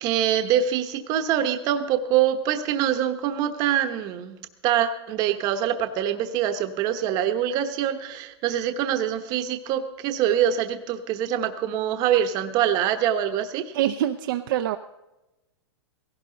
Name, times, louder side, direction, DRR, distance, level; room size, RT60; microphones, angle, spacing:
voice 1, 0.0-4.4 4.6-13.7, right 10 dB, 25° right, 8 dB, 1.0 m, -24 dB
voice 2, 13.7-14.8, right 12 dB, 50° right, 7 dB, 0.5 m, -25 dB
17.0 x 16.0 x 3.9 m, 0.98 s
supercardioid pair, 170°, 15 cm